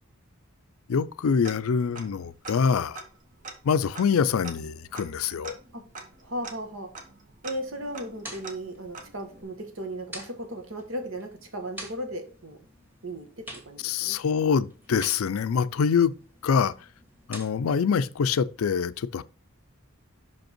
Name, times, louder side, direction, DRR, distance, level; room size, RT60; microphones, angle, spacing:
voice 1, 0.9-3.0 3.6-5.6 13.8-16.1 16.4-16.7 17.3-19.2, left 6 dB, 85° left, 0.4 m, -25 dB
Tick-tock, 1.4-2.2 2.4-2.5 2.9-9.4, right 3 dB, 40° right, 1.0 m, -44 dB
voice 2, 6.2-6.9 7.4-12.6 13.0-14.2, right 1 dB, 70° right, 1.5 m, -36 dB
sound 1, 7.7-17.8, equal, 10° right, 1.8 m, -48 dB
5.7 x 5.2 x 4.4 m
head